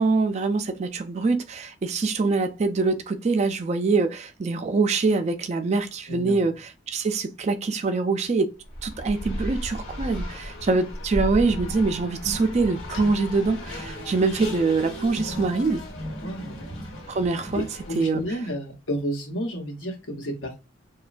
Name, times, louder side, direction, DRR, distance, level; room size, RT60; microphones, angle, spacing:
voice 1, 0.0-8.5 8.8-15.8 17.1-17.7 18.0-18.2, right 3 dB, 35° right, 0.3 m, -24 dB
voice 2, 6.1-6.5 16.2-16.6 17.5-20.6, equal, 85° left, 1.0 m, -31 dB
Race car auto racing, 8.6-18.3, equal, 65° left, 1.2 m, -35 dB
3.0 x 2.2 x 2.5 m
head